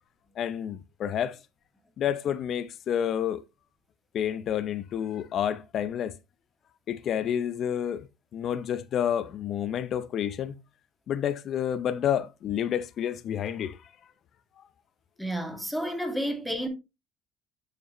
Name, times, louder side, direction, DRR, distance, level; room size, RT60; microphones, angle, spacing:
voice 1, 0.4-1.4 2.0-3.4 4.1-6.2 6.9-10.6 11.1-13.9 14.6-14.7, left 9 dB, 50° left, 0.6 m, -29 dB
voice 2, 15.2-16.7, equal, ahead, 2.2 m, -31 dB
7.5 x 5.6 x 3.1 m
supercardioid pair, 90°, 0 cm